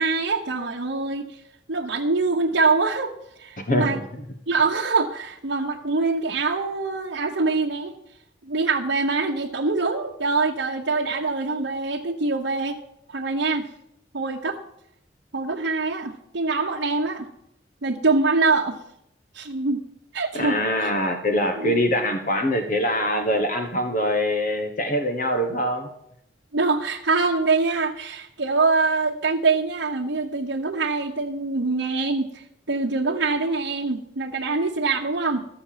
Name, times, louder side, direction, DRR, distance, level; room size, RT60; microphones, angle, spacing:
voice 1, 0.0-1.4 1.7-3.1 3.4-4.0 4.5-7.9 8.4-12.8 13.1-13.7 14.1-14.6 15.3-17.3 17.8-18.8 19.3-19.8 20.1-20.9 21.5-21.8 26.5-35.5, right 3 dB, 75° right, -1 dB, 1.0 m, -24 dB
voice 2, 3.6-4.0 20.3-25.9, left 1 dB, 45° left, 5 dB, 1.1 m, -23 dB
13.5 x 6.7 x 7.5 m, 0.77 s
head